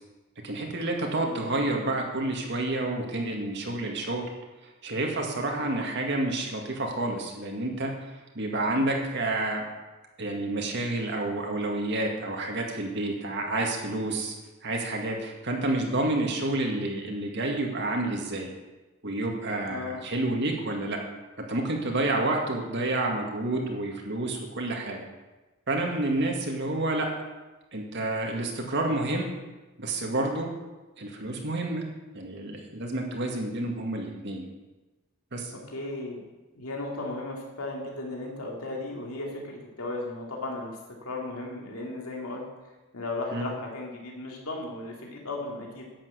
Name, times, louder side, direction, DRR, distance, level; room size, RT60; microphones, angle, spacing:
voice 1, 0.4-4.2 4.8-9.6 10.2-14.3 14.6-18.5 19.0-21.0 21.5-25.0 25.7-27.1 27.7-29.3 29.8-30.5 31.0-31.8 32.1-34.5 35.3-35.5 43.3-43.5, right 2 dB, 55° right, 1 dB, 2.0 m, -29 dB
voice 2, 1.0-1.4 5.5-5.8 19.7-20.0 35.5-36.2 36.5-40.8 41.0-42.4 42.9-45.9, left 2 dB, 85° left, -1 dB, 2.6 m, -36 dB
11.0 x 7.7 x 8.0 m, 1.1 s
head